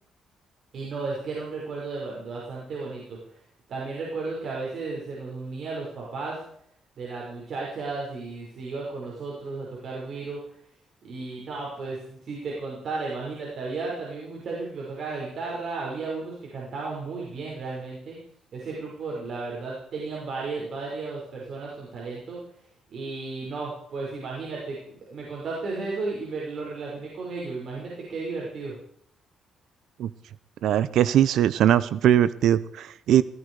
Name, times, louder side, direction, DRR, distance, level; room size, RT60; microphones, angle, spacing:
voice 1, 0.7-3.2 3.7-6.4 7.0-10.4 11.0-18.2 18.5-22.4 22.9-28.7, right 3 dB, 60° right, -3 dB, 5.8 m, -34 dB
voice 2, 30.6-33.2, right 11 dB, 75° right, 17 dB, 0.8 m, -20 dB
17.0 x 15.5 x 4.9 m, 0.66 s
cardioid pair, 90°, 0 cm